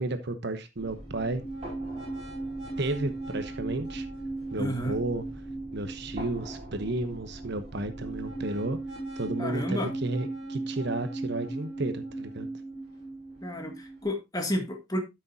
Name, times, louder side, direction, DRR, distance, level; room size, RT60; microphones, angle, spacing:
voice 1, 0.0-1.4 2.8-4.1 4.5-5.2 5.7-8.8 9.2-12.5, right 2 dB, 55° right, 1.0 m, -32 dB
sound 1, 0.8-14.0, right 2 dB, 30° right, 5.0 m, -37 dB
voice 2, 4.6-5.0 9.4-9.9 13.4-15.0, equal, 20° left, 1.9 m, -31 dB
13.0 x 6.4 x 2.7 m
head